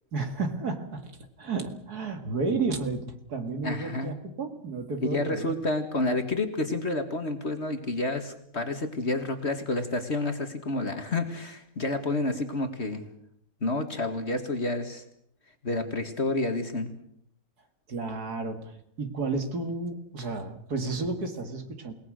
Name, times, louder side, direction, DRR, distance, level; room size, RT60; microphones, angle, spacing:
voice 1, 0.1-5.5 17.9-18.7 19.0-21.9, right 3 dB, 60° right, 7 dB, 2.7 m, -32 dB
voice 2, 3.6-4.1 5.0-13.0 13.6-15.0 15.6-16.9, left 2 dB, 40° left, 7 dB, 2.1 m, -29 dB
28.5 x 18.5 x 6.4 m, 0.70 s
omnidirectional pair, 1.9 m